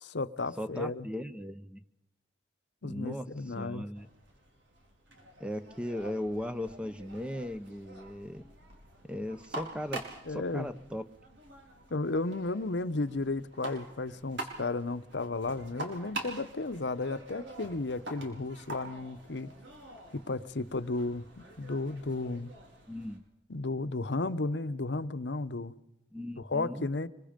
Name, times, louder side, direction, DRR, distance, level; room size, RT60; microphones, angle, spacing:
voice 1, 0.0-1.1 2.8-3.9 10.3-10.7 11.9-19.5 20.1-21.2 21.6-22.5 23.5-25.7 26.5-27.1, left 3 dB, 75° left, 0.9 m, -33 dB
voice 2, 0.6-1.8 2.8-4.1 5.4-8.4 9.1-10.0 10.3-11.0 22.9-23.2 26.1-26.9, left 1 dB, 5° right, 0.8 m, -37 dB
sound 1, 3.9-23.2, right 2 dB, 90° right, 4.6 m, -46 dB
25.0 x 23.5 x 5.2 m
head